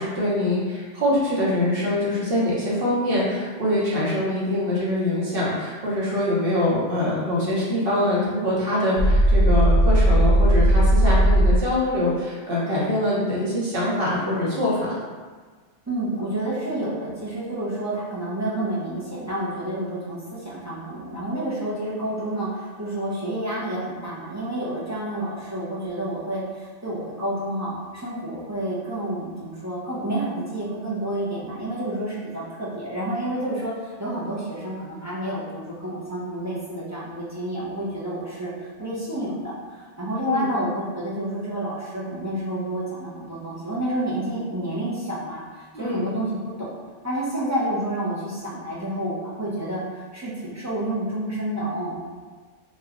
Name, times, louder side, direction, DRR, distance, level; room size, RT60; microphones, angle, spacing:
voice 1, 0.0-15.0 40.2-40.5 45.7-46.0, left 1 dB, 55° right, -7 dB, 1.0 m, -24 dB
sound 1, 9.0-11.6, right 1 dB, 80° left, 0.9 m, -17 dB
voice 2, 15.9-46.7 47.0-52.0, right 1 dB, 20° right, -9 dB, 0.5 m, -29 dB
3.0 x 2.2 x 3.6 m, 1.5 s
omnidirectional pair, 1.2 m